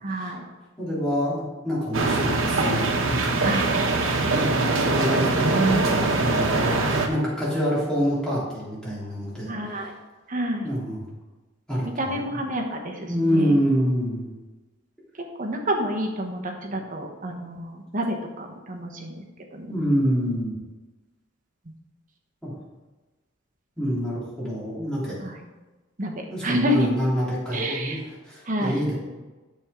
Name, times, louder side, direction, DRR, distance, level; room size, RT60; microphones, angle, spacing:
voice 1, 0.0-0.4 3.4-3.7 9.5-9.9 10.3-10.7 12.0-13.6 15.4-19.2 19.5-19.7 25.2-25.4 26.0-26.9 27.5-28.0 28.5-28.8, equal, 40° right, 2 dB, 1.1 m, -28 dB
voice 2, 0.8-3.5 4.0-9.5 10.6-11.1 11.7-12.4 13.1-14.3 19.7-20.5 22.4-22.5 23.8-25.2 26.3-28.0 28.2-28.9, equal, 5° left, -8 dB, 3.0 m, -26 dB
sound 1, 1.9-7.1, right 3 dB, 85° right, 1.0 m, -22 dB
8.9 x 6.9 x 3.7 m, 1.2 s
head